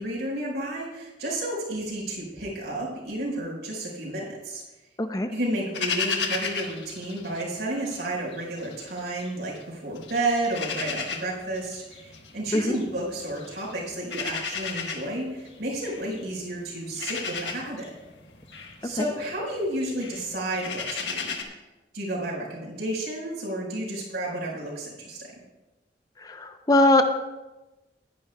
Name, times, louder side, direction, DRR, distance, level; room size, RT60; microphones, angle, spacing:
voice 1, 0.0-4.6 5.3-17.9 18.8-21.4 21.9-25.3, right 1 dB, 70° right, -4 dB, 4.6 m, -31 dB
voice 2, 5.0-5.3 12.5-12.8 19.0-19.1 26.2-27.0, left 1 dB, 20° left, 7 dB, 0.5 m, -21 dB
sound 1, 5.7-8.0 8.3-9.6 10.0-21.4, left 5 dB, 85° left, 1.4 m, -34 dB
19.0 x 10.5 x 2.2 m, 1.1 s
head